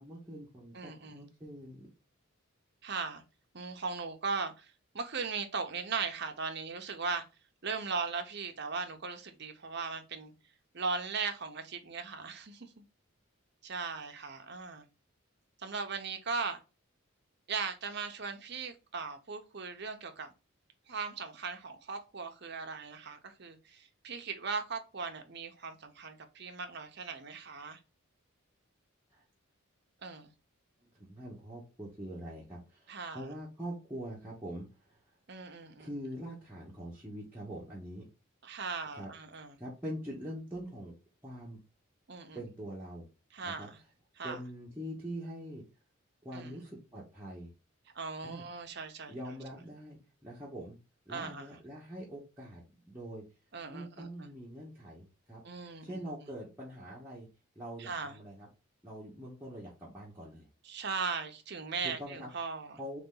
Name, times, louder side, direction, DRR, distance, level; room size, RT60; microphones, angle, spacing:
voice 1, 0.0-1.9 29.1-29.2 30.9-35.0 35.8-38.0 39.0-39.1 39.6-40.9 41.2-41.6 42.3-43.1 43.4-43.7 44.2-45.6 46.2-47.5 48.2-48.4 49.1-50.8 51.1-53.2 53.7-55.4 55.8-57.3 57.5-58.5 58.8-60.5 61.8-62.3 62.8-63.0, equal, 10° right, 1.1 m, -44 dB
voice 2, 0.7-1.3 2.8-3.2 3.5-7.2 7.6-10.3 10.7-12.8 13.6-14.8 15.6-16.6 17.5-20.3 20.9-27.8 30.0-30.3 32.9-33.3 35.3-35.9 38.4-39.6 42.1-42.4 43.3-43.8 44.2-44.4 46.3-46.6 47.9-49.1 51.1-51.5 53.5-54.3 55.4-56.3 57.8-58.2 60.6-62.8, right 5 dB, 50° right, 0.8 m, -38 dB
3.9 x 3.3 x 3.7 m
head